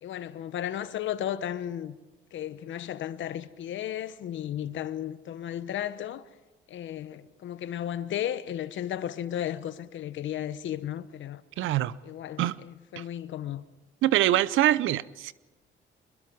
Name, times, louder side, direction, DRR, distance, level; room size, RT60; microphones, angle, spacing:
voice 1, 0.0-2.0 2.3-6.3 6.7-11.4 12.0-13.6, left 11 dB, 70° left, 1.1 m, -34 dB
voice 2, 11.6-12.0 12.4-12.5 13.0-13.1 14.0-15.3, right 13 dB, 80° right, 0.7 m, -24 dB
25.5 x 22.0 x 4.7 m
cardioid pair, 90°, 20 cm